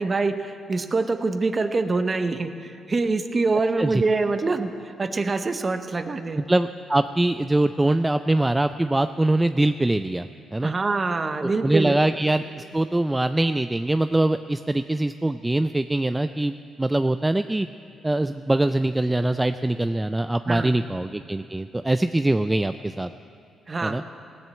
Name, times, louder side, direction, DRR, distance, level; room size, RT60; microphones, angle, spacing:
voice 1, 0.0-6.4 10.6-12.0 20.5-20.9 23.7-24.0, right 3 dB, 35° right, 9 dB, 0.9 m, -25 dB
voice 2, 6.4-10.3 10.5-10.7 11.4-16.5 16.8-17.7 18.0-23.1 23.8-24.0, right 1 dB, 15° right, 10 dB, 0.3 m, -23 dB
17.0 x 7.6 x 7.5 m, 2.4 s
cardioid pair, 75°, 0 cm